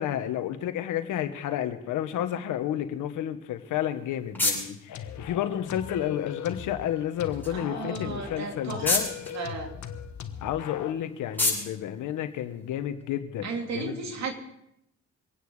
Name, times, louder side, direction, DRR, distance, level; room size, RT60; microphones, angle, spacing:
voice 1, 0.0-9.1 10.4-14.3, left 11 dB, 85° left, 9 dB, 1.4 m, -31 dB
sound 1, 3.6-13.0, left 2 dB, 5° left, 6.7 m, -35 dB
sound 2, 4.9-10.9, left 8 dB, 70° left, 1.4 m, -39 dB
voice 2, 7.4-9.0 9.3-9.7 13.4-14.3, right 4 dB, 60° right, 3 dB, 3.0 m, -34 dB
24.0 x 9.5 x 4.9 m, 0.79 s
cardioid pair, 90°, 30 cm